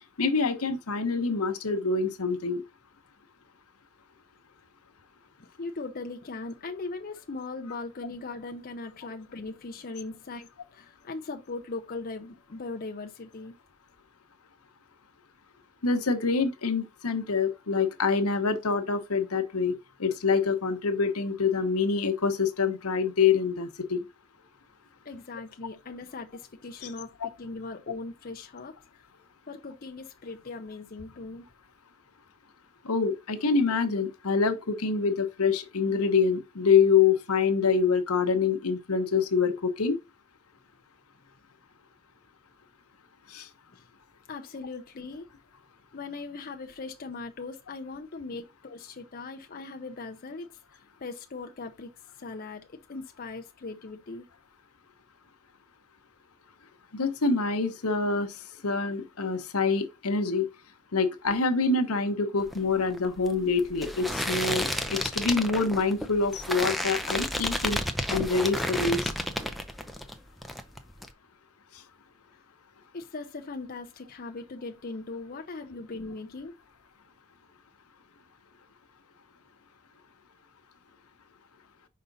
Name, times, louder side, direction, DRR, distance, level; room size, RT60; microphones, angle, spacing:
voice 1, 0.2-2.6 15.8-19.7 20.0-24.0 26.8-26.9 27.2-27.3 32.8-40.0 43.3-43.5 56.9-58.4 58.6-60.5 60.9-67.8 68.1-69.1, left 5 dB, 80° left, 1.1 m, -26 dB
voice 2, 5.4-13.6 25.0-29.0 29.5-31.5 43.7-43.9 44.3-45.3 45.9-50.6 51.0-51.9 52.2-52.6 52.9-54.2 72.9-76.5, left 3 dB, 40° left, 0.6 m, -39 dB
sound 1, 62.4-70.1 70.4-71.1, equal, ahead, 0.6 m, -31 dB
5.6 x 5.1 x 4.0 m
head